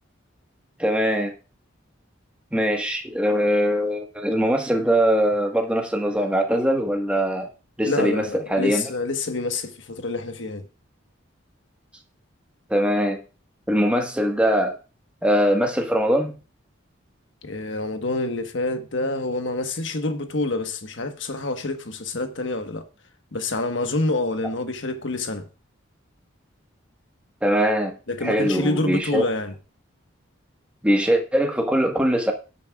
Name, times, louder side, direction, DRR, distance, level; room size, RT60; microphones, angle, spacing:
voice 1, 0.8-1.3 2.5-7.5 7.8-8.9 12.7-13.2 13.7-14.7 15.2-16.3 27.4-27.9 28.2-29.2 30.8-32.3, equal, 5° right, 1.5 m, -22 dB
voice 2, 7.8-10.7 17.4-22.8 23.3-25.5 28.1-29.5, left 2 dB, 70° left, 1.4 m, -27 dB
18.0 x 8.5 x 2.4 m
head